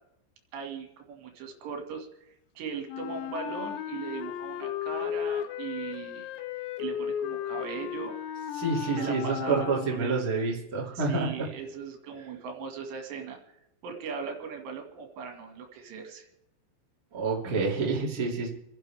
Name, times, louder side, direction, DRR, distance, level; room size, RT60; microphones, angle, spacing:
voice 1, 0.5-2.1 2.6-6.3 6.8-8.1 8.8-10.2 11.0-13.4 13.8-16.3, right 6 dB, 70° right, 3 dB, 4.0 m, -38 dB
Wind instrument woodwind instrument, 2.9-10.2, left 10 dB, 80° left, 2.7 m, -35 dB
voice 2, 8.5-11.5 17.1-18.5, right 4 dB, 25° right, -3 dB, 2.0 m, -28 dB
29.5 x 10.5 x 3.5 m, 0.83 s
omnidirectional pair, 5.4 m